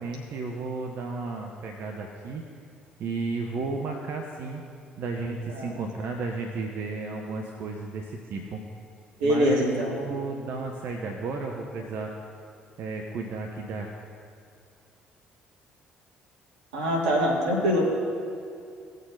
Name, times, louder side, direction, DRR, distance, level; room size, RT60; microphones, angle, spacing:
voice 1, 0.0-2.4 3.0-4.6 5.0-8.6 9.2-12.1 12.8-13.9, right 3 dB, 60° right, 2 dB, 1.0 m, -33 dB
voice 2, 9.2-9.9 16.7-17.8, equal, 85° right, -1 dB, 2.0 m, -24 dB
18.0 x 6.7 x 4.0 m, 2.5 s
hypercardioid pair, 50°, 4 cm